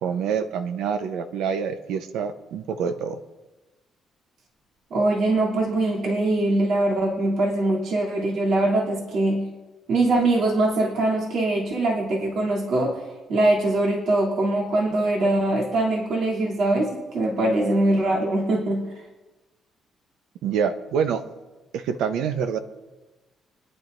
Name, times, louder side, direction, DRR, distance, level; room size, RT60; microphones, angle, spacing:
voice 1, 0.0-3.2 20.4-21.2 21.7-22.6, right 7 dB, 90° right, 9 dB, 0.8 m, -26 dB
voice 2, 4.9-9.4 9.9-13.0 13.3-18.9, right 2 dB, 70° right, -3 dB, 3.0 m, -22 dB
26.0 x 10.5 x 2.6 m, 1.2 s
cardioid pair, 90°, 0 cm